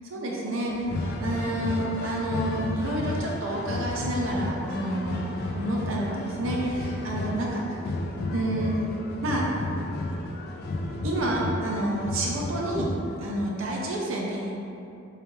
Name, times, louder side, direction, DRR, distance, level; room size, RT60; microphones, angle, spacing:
voice 1, 0.1-0.9 1.2-7.8 8.3-8.9 9.2-9.4 11.0-12.9 13.2-14.5, right 1 dB, 75° right, -3 dB, 0.7 m, -29 dB
sound 1, 0.7-13.4, left 1 dB, 50° left, 0.3 m, -32 dB
3.3 x 3.3 x 3.0 m, 2.7 s
head